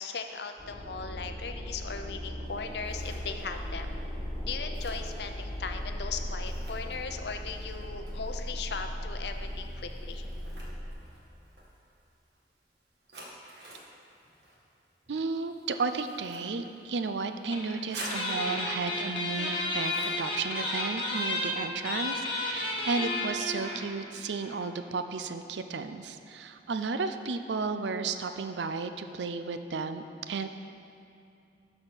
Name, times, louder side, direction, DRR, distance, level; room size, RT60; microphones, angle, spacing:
voice 1, 0.0-4.0 4.4-10.3, left 5 dB, 70° left, 6 dB, 0.6 m, -38 dB
sound 1, 0.6-10.9, equal, 10° left, 1.8 m, -37 dB
Scissors, 2.4-21.2, right 1 dB, 70° right, 1.7 m, -50 dB
voice 2, 15.1-30.5, right 4 dB, 85° right, 9 dB, 0.5 m, -33 dB
sound 2, 17.5-17.7 18.0-23.9 24.2-24.3 24.4-24.6, left 2 dB, 30° left, 1.3 m, -32 dB
12.0 x 4.3 x 6.1 m, 2.6 s
head